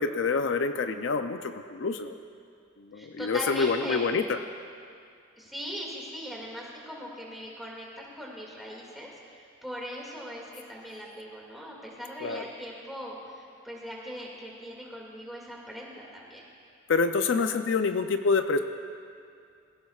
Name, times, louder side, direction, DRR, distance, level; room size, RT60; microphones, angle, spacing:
voice 1, 0.0-2.2 2.8-4.4 12.2-12.4 16.9-18.6, left 4 dB, 65° left, 8 dB, 0.5 m, -27 dB
voice 2, 2.9-4.1 5.4-16.5, equal, ahead, -4 dB, 2.1 m, -40 dB
20.5 x 16.0 x 2.4 m, 2.3 s
head